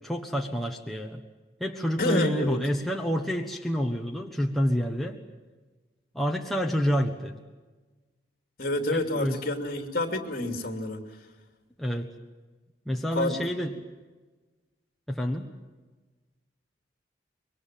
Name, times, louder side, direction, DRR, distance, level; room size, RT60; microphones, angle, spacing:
voice 1, 0.0-1.2 1.6-5.2 6.1-7.3 8.9-9.4 11.8-12.1 12.9-13.7 15.1-15.5, equal, ahead, 1 dB, 1.3 m, -28 dB
voice 2, 2.0-2.6 8.6-11.0 13.1-13.7, left 1 dB, 50° left, 5 dB, 2.9 m, -28 dB
25.5 x 22.5 x 7.6 m, 1.3 s
head